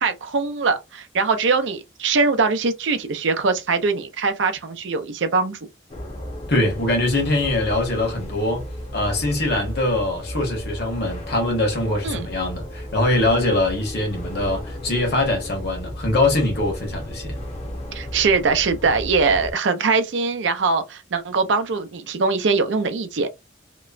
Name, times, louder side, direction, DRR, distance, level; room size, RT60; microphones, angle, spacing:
voice 1, 0.0-5.6 12.0-12.3 17.9-23.3, right 4 dB, 75° right, 0.5 m, -22 dB
sound 1, 5.9-19.5, equal, 35° left, 0.7 m, -34 dB
voice 2, 6.5-8.7 8.9-17.4, left 2 dB, 60° left, 1.2 m, -22 dB
2.9 x 2.1 x 2.4 m
head